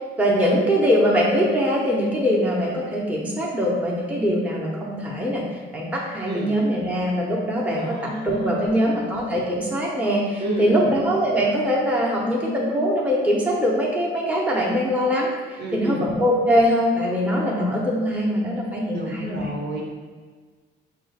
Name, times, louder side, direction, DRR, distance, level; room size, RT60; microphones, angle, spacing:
voice 1, 0.2-5.4 5.7-15.3 15.7-19.5, equal, 5° right, -4 dB, 0.8 m, -22 dB
voice 2, 7.7-9.1 10.4-10.9 15.6-16.1 18.9-19.8, right 1 dB, 60° right, -3 dB, 1.2 m, -30 dB
5.3 x 2.3 x 3.3 m, 1.5 s
cardioid pair, 90°, 20 cm